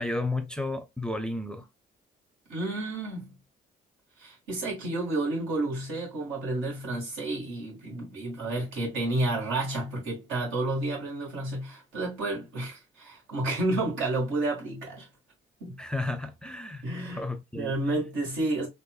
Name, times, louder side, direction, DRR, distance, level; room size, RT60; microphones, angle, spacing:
voice 1, 0.0-1.6 15.8-16.8 17.1-17.7, left 2 dB, 5° left, 0.5 m, -32 dB
voice 2, 2.5-3.4 4.2-15.1 15.6-15.8 16.8-17.2 17.5-18.7, right 2 dB, 85° right, 2.0 m, -30 dB
4.2 x 2.6 x 2.3 m
cardioid pair, 90°, 20 cm